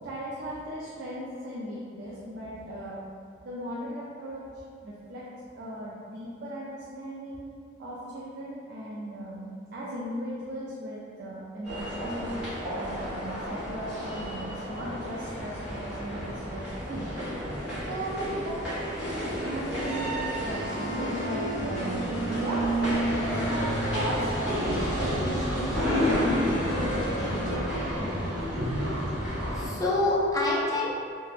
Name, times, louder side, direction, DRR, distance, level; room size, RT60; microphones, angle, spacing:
voice 1, 0.0-3.0 3.4-4.4 4.8-5.2 5.6-7.5 7.8-12.4 12.7-16.6 16.9-17.1 17.8-24.3 24.6-28.4, right 1 dB, 55° right, -7 dB, 0.4 m, -37 dB
sound 1, 11.6-29.7, equal, 5° right, 1.1 m, -31 dB
sound 2, 20.5-27.6, right 2 dB, 50° left, 0.7 m, -32 dB
voice 2, 28.5-31.0, left 2 dB, 20° left, -6 dB, 0.4 m, -28 dB
3.2 x 2.1 x 2.4 m, 2.4 s
head